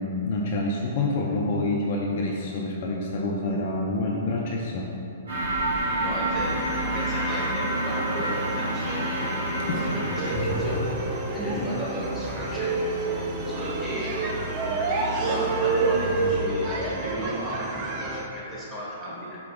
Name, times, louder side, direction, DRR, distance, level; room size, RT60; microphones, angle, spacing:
voice 1, 0.0-4.9 9.6-9.9 11.5-11.7, left 2 dB, 50° left, -2 dB, 0.4 m, -27 dB
sound 1, 5.3-10.9, right 1 dB, 70° right, 1.5 m, -28 dB
voice 2, 6.0-9.4 9.7-10.8 11.3-12.8 13.5-14.3 14.8-19.4, equal, ahead, -9 dB, 1.3 m, -35 dB
sound 2, 6.4-16.4, right 1 dB, 25° left, 0.8 m, -37 dB
sound 3, 6.4-18.2, right 3 dB, 35° right, 0.4 m, -30 dB
4.6 x 3.7 x 2.4 m, 2.8 s
figure-of-eight pair, 115°, 0 cm